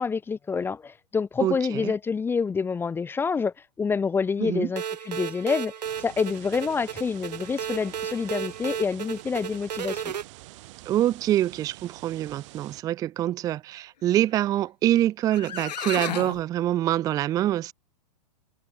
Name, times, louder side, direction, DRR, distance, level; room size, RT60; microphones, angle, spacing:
voice 1, 0.0-5.7 6.0-10.1, left 5 dB, 10° left, 1.3 m, -27 dB
voice 2, 1.4-1.9 4.4-4.7 10.9-17.7, right 13 dB, 15° right, 0.5 m, -25 dB
sound 1, 4.8-10.2, right 8 dB, 90° right, 5.0 m, -34 dB
sound 2, 5.8-12.8, right 21 dB, 45° right, 3.4 m, -47 dB
sound 3, 15.0-15.1 15.3-16.4, left 9 dB, 80° left, 4.9 m, -33 dB
hypercardioid pair, 145°, 21 cm